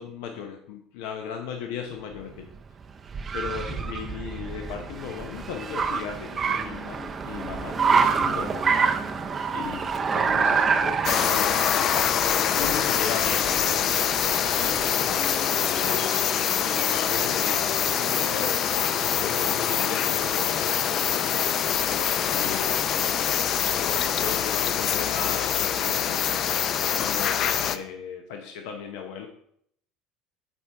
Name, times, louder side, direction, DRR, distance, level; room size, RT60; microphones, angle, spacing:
voice 1, 0.0-2.5 3.3-8.9 9.5-11.6 12.5-14.0 14.4-17.7 18.0-18.6 18.9-20.8 22.3-22.8 23.7-26.2 27.0-29.3, left 7 dB, 80° left, 4 dB, 0.8 m, -37 dB
Car, 2.1-15.0, right 5 dB, 25° right, 0.4 m, -27 dB
sound 1, 6.5-24.3, left 2 dB, 5° right, 0.8 m, -44 dB
sound 2, 11.0-27.8, left 9 dB, 40° left, 0.4 m, -24 dB
8.3 x 4.5 x 3.4 m, 0.70 s
cardioid pair, 135°, 0 cm